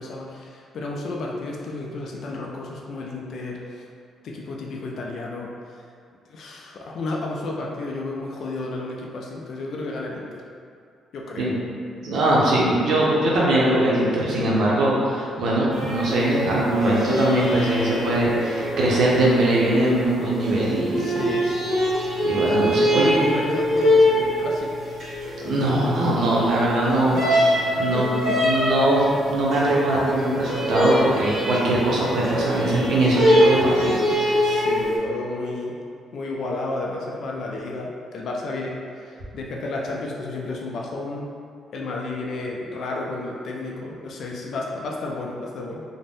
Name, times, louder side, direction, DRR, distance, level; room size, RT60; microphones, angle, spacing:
voice 1, 0.0-3.9 4.2-5.5 6.3-10.4 11.1-11.6 21.0-21.8 22.9-24.7 27.1-27.3 27.9-28.4 34.4-35.8 36.1-41.3 41.7-45.8, left 2 dB, 60° left, -2 dB, 0.3 m, -32 dB
voice 2, 12.0-21.1 22.2-23.1 25.4-28.1 28.4-34.3, right 1 dB, 70° right, -5 dB, 0.6 m, -21 dB
sound 1, 15.7-35.0, equal, 55° right, 1.4 m, -24 dB
2.5 x 2.0 x 3.3 m, 2.3 s
cardioid pair, 105°, 0 cm